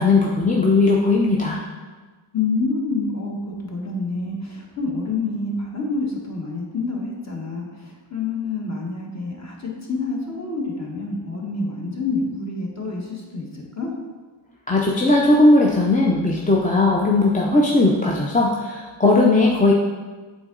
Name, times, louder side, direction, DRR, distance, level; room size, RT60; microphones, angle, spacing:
voice 1, 0.0-1.6 14.7-19.7, left 2 dB, 15° left, -2 dB, 0.6 m, -17 dB
voice 2, 2.3-13.9, left 3 dB, 35° left, -2 dB, 1.3 m, -27 dB
7.9 x 3.7 x 3.8 m, 1.3 s
wide cardioid pair, 95°, 48 cm